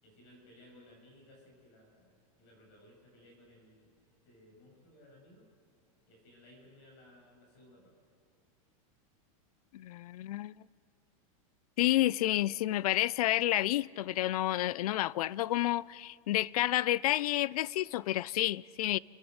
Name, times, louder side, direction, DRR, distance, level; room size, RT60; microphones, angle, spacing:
voice 1, 0.0-3.9 4.3-5.5 6.1-7.9, left 1 dB, 55° left, 7.7 m, -59 dB
voice 2, 9.7-10.5 11.8-19.0, left 15 dB, 85° left, 0.4 m, -30 dB
29.5 x 11.0 x 8.0 m
supercardioid pair, 170°, 18 cm